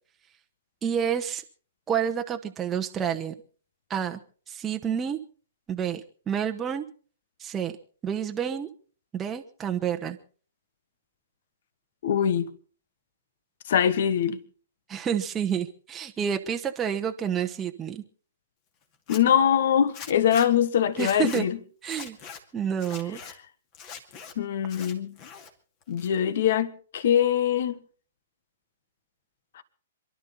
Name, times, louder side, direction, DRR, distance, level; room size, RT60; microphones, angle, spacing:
voice 1, 0.8-1.4 1.9-3.3 3.9-4.2 4.5-5.2 5.7-6.8 7.4-7.7 8.0-8.7 9.1-10.2 14.9-18.0 21.0-21.5 21.8-22.2 22.5-23.2, right 8 dB, 15° right, 1.1 m, -29 dB
voice 2, 12.0-12.5 13.7-14.4 19.1-21.6 24.4-25.1 25.9-27.7 29.5-29.6, left 9 dB, 50° left, 1.3 m, -23 dB
Zipper (clothing), 18.9-19.2 19.9-20.5 20.9-21.4 21.8-22.4 22.8-23.3 23.7-24.3 24.7-25.5 25.8-26.4, left 6 dB, 35° left, 2.4 m, -42 dB
27.0 x 12.0 x 4.2 m
figure-of-eight pair, 115°, 0 cm